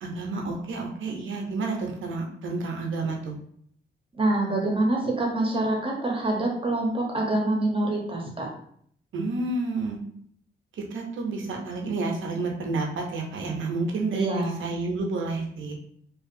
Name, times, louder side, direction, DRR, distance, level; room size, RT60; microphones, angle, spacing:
voice 1, 0.0-3.4 9.1-10.0 10.9-15.7, right 3 dB, 70° right, 1 dB, 0.7 m, -30 dB
voice 2, 4.1-8.5 14.1-14.6, right 2 dB, 25° right, -1 dB, 0.8 m, -25 dB
2.6 x 2.4 x 2.5 m, 0.65 s
cardioid pair, 65°, 21 cm